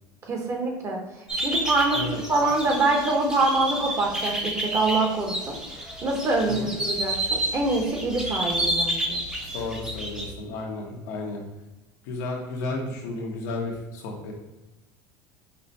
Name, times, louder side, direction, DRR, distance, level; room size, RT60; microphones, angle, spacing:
voice 1, 0.3-1.0 1.4-2.0 2.3-5.5 6.0-9.2, right 2 dB, 30° right, 1 dB, 0.9 m, -25 dB
sound 1, 1.3-10.3, right 1 dB, 5° right, 0.6 m, -30 dB
voice 2, 9.5-11.4 12.0-14.3, left 2 dB, 85° left, -1 dB, 1.0 m, -33 dB
5.6 x 2.2 x 2.6 m, 1.1 s
supercardioid pair, 125°, 9 cm